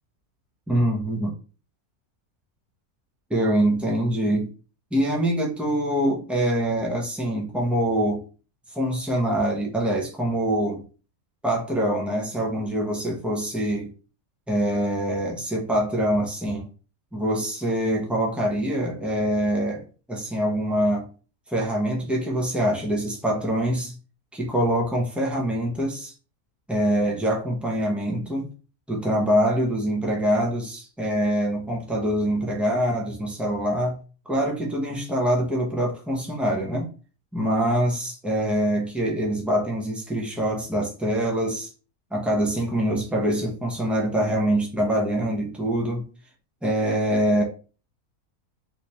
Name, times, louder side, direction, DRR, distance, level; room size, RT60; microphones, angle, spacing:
voice 1, 0.7-1.3 3.3-4.5 4.9-8.2 8.7-10.8 11.4-13.9 14.5-16.7 17.1-21.1 21.5-23.9 24.3-26.1 26.7-28.5 28.9-34.0 34.3-36.9 37.3-41.7 42.1-46.1 46.6-47.4, equal, ahead, 0.3 m, -24 dB
3.2 x 3.2 x 2.9 m
omnidirectional pair, 1.6 m